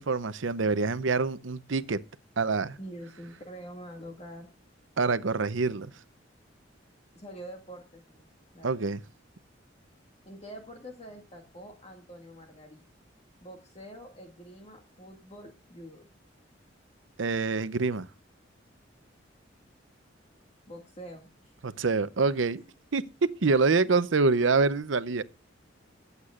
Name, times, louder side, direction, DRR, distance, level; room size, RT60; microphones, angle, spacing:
voice 1, 0.0-2.0 2.4-2.8 5.0-5.9 8.6-9.0 17.2-18.1 21.6-22.6 22.9-23.0 23.4-25.2, right 4 dB, 85° right, 0.7 m, -26 dB
voice 2, 2.8-4.5 7.1-8.3 8.5-8.7 10.3-12.8 13.4-16.0 20.7-21.5, equal, 35° left, 2.0 m, -45 dB
23.0 x 8.2 x 2.4 m
head